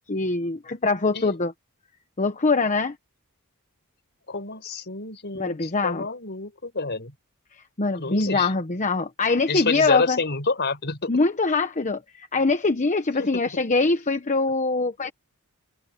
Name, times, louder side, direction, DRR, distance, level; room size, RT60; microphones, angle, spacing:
voice 1, 0.1-1.5 2.2-3.0 5.3-6.1 7.8-10.2 11.1-15.1, left 3 dB, 35° left, 1.0 m, -23 dB
voice 2, 4.3-7.1 7.9-8.5 9.5-11.1 13.2-13.4, left 3 dB, 50° left, 5.0 m, -28 dB
head